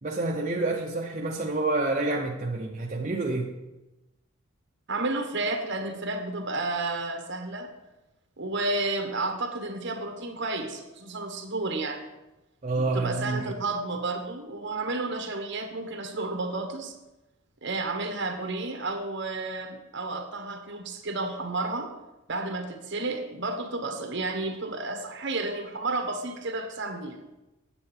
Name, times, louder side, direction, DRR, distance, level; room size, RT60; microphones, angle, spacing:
voice 1, 0.0-3.5 12.6-13.5, right 2 dB, 35° right, -1 dB, 0.6 m, -28 dB
voice 2, 4.9-7.7 8.4-12.0 12.8-16.9 17.6-21.9 22.3-27.2, right 2 dB, 55° right, 5 dB, 1.2 m, -31 dB
8.7 x 7.5 x 4.4 m, 1.0 s
head